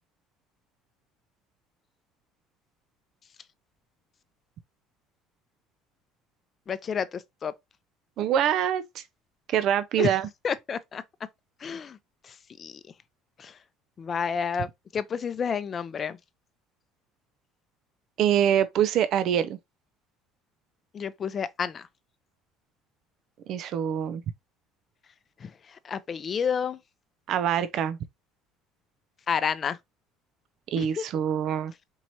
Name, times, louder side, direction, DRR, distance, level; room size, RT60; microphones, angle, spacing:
voice 1, 6.7-7.5 10.0-10.2 10.4-11.0 11.6-12.0 12.2-12.8 13.4-13.6 14.0-16.2 20.9-21.9 25.4-26.8 29.3-29.8 30.8-31.1, left 6 dB, 40° left, 0.5 m, -30 dB
voice 2, 8.2-9.0 9.5-10.3 18.2-19.6 23.5-24.2 27.3-28.0 30.7-31.7, right 9 dB, 60° right, 0.4 m, -25 dB
4.6 x 2.9 x 2.7 m
supercardioid pair, 90°, 0 cm